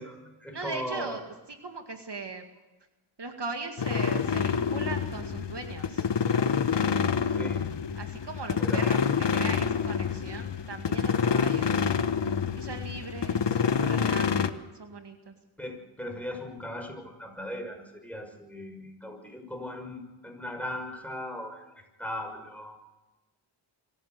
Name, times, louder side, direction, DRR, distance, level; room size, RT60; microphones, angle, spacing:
voice 1, 0.0-1.2 7.3-7.7 8.6-8.9 15.6-22.8, left 1 dB, 5° left, 3 dB, 6.1 m, -38 dB
voice 2, 0.5-2.4 3.2-6.1 8.0-11.9 12.6-15.3, right 3 dB, 55° right, 5 dB, 2.1 m, -39 dB
sound 1, 3.8-14.5, left 6 dB, 55° left, 1.2 m, -27 dB
24.5 x 15.0 x 8.2 m, 1.1 s
cardioid pair, 55°, 49 cm